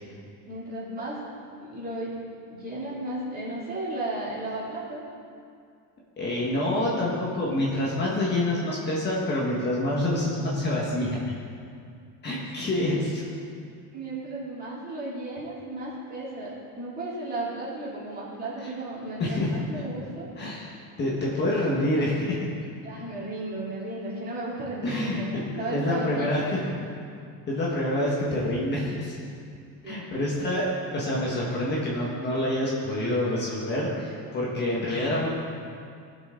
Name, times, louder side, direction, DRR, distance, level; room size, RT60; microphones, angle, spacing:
voice 1, 0.4-1.2 1.6-2.2 2.5-5.0 8.2-8.3 13.9-20.3 22.8-26.6 29.8-30.1, right 2 dB, 25° right, -7 dB, 2.9 m, -34 dB
voice 2, 6.2-11.2 12.2-13.2 18.6-18.7 19.2-19.5 19.7-19.8 20.4-20.7 21.0-22.4 24.8-26.6 27.5-29.1 29.8-30.7 30.9-35.3, left 1 dB, 25° left, -5 dB, 1.5 m, -27 dB
18.5 x 6.3 x 3.8 m, 2.4 s
cardioid pair, 170°, 38 cm